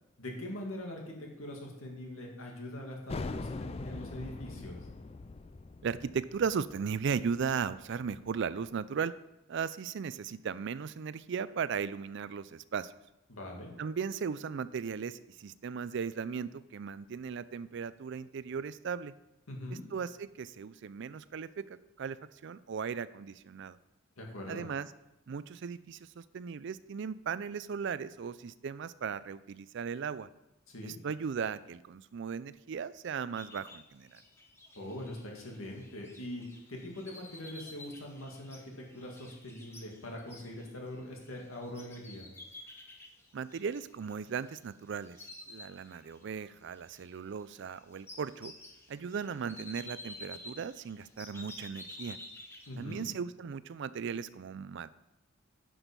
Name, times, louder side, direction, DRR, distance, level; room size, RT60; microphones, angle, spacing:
voice 1, 0.2-4.9 13.3-13.7 19.5-19.8 24.2-24.7 30.7-31.0 34.7-36.4 36.7-42.3 52.7-53.1, left 1 dB, 90° left, 0 dB, 2.3 m, -42 dB
sound 1, 3.1-8.4, left 3 dB, 30° left, 0.4 m, -42 dB
voice 2, 5.8-9.1 9.5-12.9 13.8-19.1 19.7-23.8 24.5-24.9 25.3-30.3 30.8-34.2 43.3-48.5 48.9-52.2 52.8-54.9, right 6 dB, 60° right, 17 dB, 0.4 m, -37 dB
sound 2, 33.3-44.7 45.0-46.4 46.7-53.0, left 1 dB, 10° left, 1.1 m, -51 dB
9.9 x 6.2 x 5.3 m, 0.91 s
head